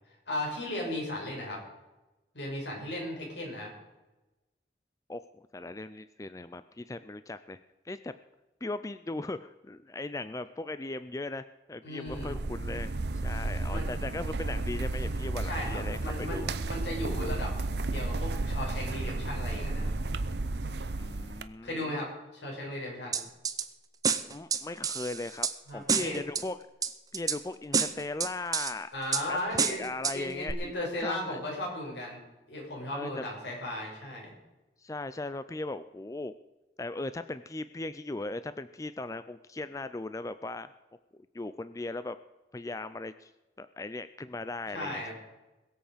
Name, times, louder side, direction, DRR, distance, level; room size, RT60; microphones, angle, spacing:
voice 1, 0.3-1.6 2.3-3.7 11.8-12.3 13.7-13.9 15.4-17.6 17.9-19.9 21.6-23.2 25.7-26.2 28.9-29.8 30.1-32.2 32.5-34.3 44.7-45.1, left 1 dB, 85° left, -2 dB, 5.9 m, -36 dB
voice 2, 5.1-7.6 7.8-8.1 8.6-11.4 11.7-12.9 13.2-16.5 21.0-22.0 24.2-25.5 25.7-26.6 27.1-28.9 29.3-30.7 31.0-31.4 32.9-33.2 34.8-36.3 36.8-40.7 41.3-42.2 42.5-43.3 43.6-45.1, left 2 dB, 20° left, 12 dB, 0.4 m, -38 dB
sound 1, 12.1-21.4, right 2 dB, 70° right, 0.8 m, -33 dB
sound 2, 23.1-23.6 24.0-25.5 25.9-26.4 26.8-27.4 27.7-28.7 29.1-29.2 29.6-30.2 30.5-30.6, right 6 dB, 20° right, 0.7 m, -28 dB
21.5 x 7.9 x 5.1 m, 1.1 s
head